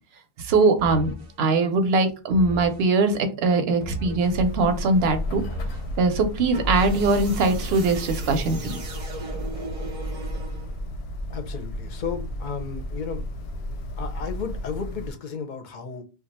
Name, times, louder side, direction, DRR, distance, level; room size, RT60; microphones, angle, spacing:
voice 1, 0.4-1.1 1.4-5.4 6.0-8.8, right 3 dB, 75° right, 8 dB, 0.8 m, -21 dB
sound 1, 0.8-1.3 2.3-2.9 3.8-4.4 5.3-5.9 6.5-10.9, right 1 dB, 45° right, 0.5 m, -35 dB
sound 2, 4.2-15.1, left 1 dB, 90° left, 0.8 m, -33 dB
voice 2, 11.3-13.3 13.9-16.0, left 6 dB, 55° left, 5 dB, 0.6 m, -33 dB
2.4 x 2.2 x 4.0 m, 0.32 s
omnidirectional pair, 1.0 m